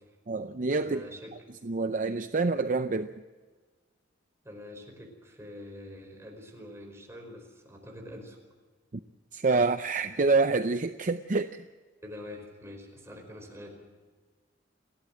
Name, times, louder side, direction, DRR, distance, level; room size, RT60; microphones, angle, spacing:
voice 1, 0.3-1.0 1.6-3.1 9.3-11.6, right 3 dB, 45° right, 10 dB, 0.6 m, -27 dB
voice 2, 0.8-1.3 4.4-8.4 12.0-13.8, left 1 dB, 15° right, 2 dB, 4.8 m, -45 dB
30.0 x 11.5 x 7.6 m, 1.4 s
head